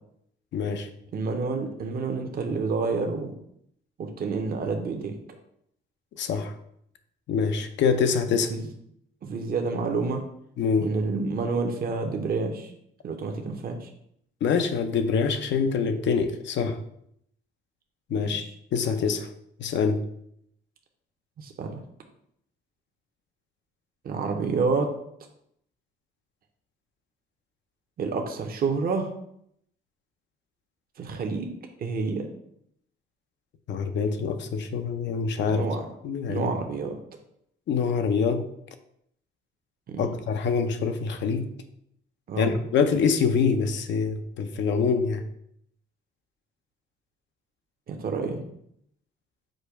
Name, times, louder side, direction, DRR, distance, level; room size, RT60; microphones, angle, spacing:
voice 1, 0.5-0.9 6.2-6.5 7.3-8.5 10.6-10.9 14.4-16.8 18.1-18.5 18.7-19.3 19.6-20.0 33.7-35.7 36.0-36.5 37.7-38.4 40.0-41.5 42.4-45.2, left 5 dB, 65° left, 8 dB, 0.5 m, -25 dB
voice 2, 1.1-3.4 4.0-5.1 8.5-8.6 9.2-10.2 10.8-12.7 13.0-13.9 21.4-21.8 24.0-24.9 28.0-29.1 31.0-31.5 31.8-32.3 35.5-35.9 36.3-37.0 39.9-40.1 42.3-42.6 47.9-48.5, right 4 dB, 50° right, 4 dB, 0.7 m, -28 dB
5.1 x 2.2 x 4.6 m, 0.72 s
cardioid pair, 90°, 20 cm